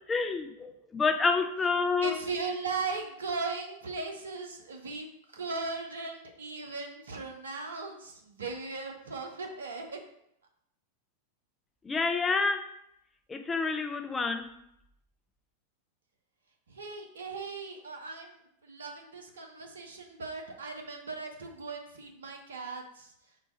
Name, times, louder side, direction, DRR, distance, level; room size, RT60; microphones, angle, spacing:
voice 1, 0.1-2.1 11.8-12.6 13.3-14.5, left 4 dB, 15° left, 6 dB, 0.4 m, -28 dB
voice 2, 2.0-5.1 5.3-10.0 16.7-18.3 18.6-23.1, right 4 dB, 70° right, 3 dB, 0.6 m, -38 dB
4.1 x 2.2 x 4.2 m, 0.76 s
figure-of-eight pair, 90°, 0 cm